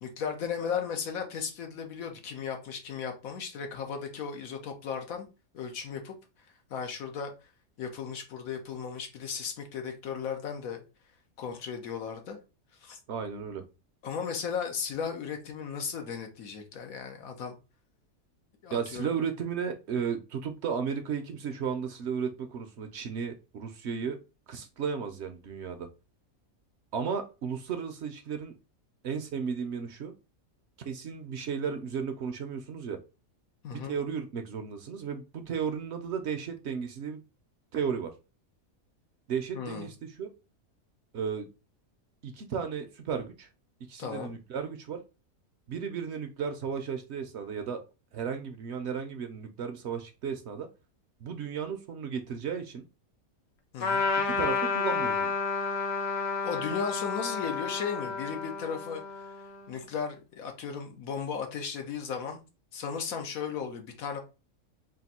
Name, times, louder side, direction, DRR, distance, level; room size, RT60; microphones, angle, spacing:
voice 1, 0.0-5.3 5.5-6.1 6.7-7.3 7.8-10.8 11.4-12.4 12.8-13.0 14.0-17.5 18.6-19.1 33.6-34.0 39.5-39.9 44.0-44.3 53.7-54.1 56.4-59.0 59.7-62.4 62.7-64.2, left 6 dB, 85° left, 1.3 m, -35 dB
voice 2, 13.1-13.6 18.7-24.2 24.5-25.9 26.9-28.5 29.0-30.1 30.9-33.0 33.7-37.2 37.7-38.1 39.3-40.3 41.1-41.5 42.2-43.5 43.8-45.0 45.7-47.8 48.1-50.7 51.2-52.9 54.2-55.3, right 6 dB, 65° right, 0.8 m, -34 dB
Trumpet, 53.8-59.7, left 4 dB, 70° left, 1.2 m, -31 dB
3.5 x 2.6 x 4.1 m
omnidirectional pair, 1.5 m